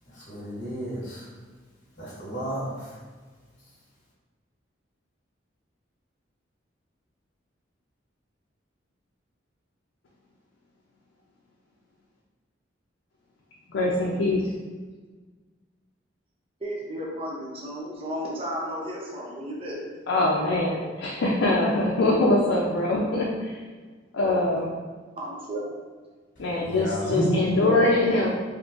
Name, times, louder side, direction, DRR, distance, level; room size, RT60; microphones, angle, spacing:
voice 1, 0.3-1.2 2.0-2.9 26.6-27.4, right 1 dB, 50° left, -10 dB, 1.2 m, -30 dB
voice 2, 13.7-14.4 20.1-23.5 24.1-24.7 26.4-28.3, left 2 dB, 85° left, -3 dB, 0.4 m, -23 dB
voice 3, 16.6-19.8 25.2-25.7, equal, 30° right, -4 dB, 0.6 m, -33 dB
3.7 x 2.7 x 2.5 m, 1.4 s
head